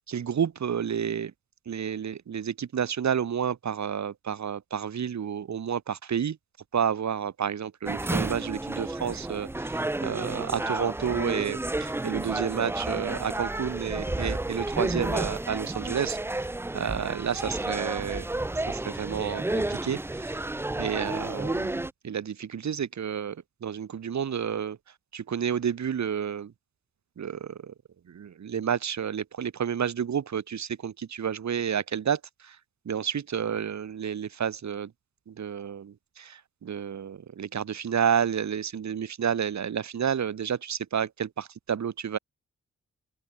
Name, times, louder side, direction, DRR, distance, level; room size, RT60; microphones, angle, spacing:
voice 1, 0.1-1.3 1.7-6.4 6.7-18.2 18.7-20.4 20.8-24.8 25.1-26.5 27.2-27.7 28.1-32.6 32.8-34.9 35.3-42.2, right 8 dB, 70° right, 1.4 m, -30 dB
sound 1, 7.9-21.9, right 2 dB, 10° right, 0.4 m, -31 dB
open air
wide cardioid pair, 110°, 29 cm